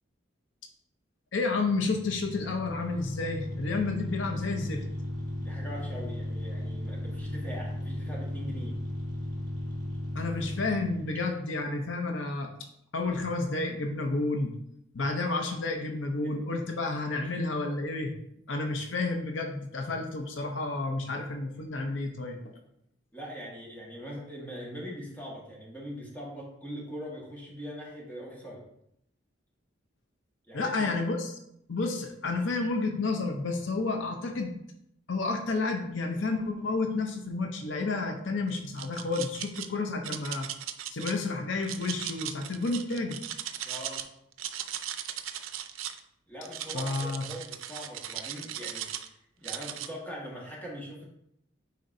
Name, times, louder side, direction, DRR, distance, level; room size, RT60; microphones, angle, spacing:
voice 1, 1.3-4.8 10.1-12.5 12.9-14.6 14.9-18.1 18.5-22.6 30.5-31.3 31.7-34.5 35.1-40.5 40.9-43.2 46.7-47.2, left 3 dB, 70° left, 3 dB, 0.7 m, -31 dB
sound 1, 1.5-11.4, left 1 dB, 40° right, 1.8 m, -36 dB
voice 2, 5.4-8.7 16.1-16.4 23.1-28.6 30.5-31.0 43.6-44.0 46.3-49.1 49.4-51.1, equal, 10° left, -4 dB, 1.5 m, -41 dB
sound 2, 38.5-39.7 40.0-41.1 41.6-44.0 44.3-46.0 46.4-49.1 49.4-49.9, right 11 dB, 90° right, 0.5 m, -37 dB
9.3 x 3.9 x 2.7 m, 0.76 s
head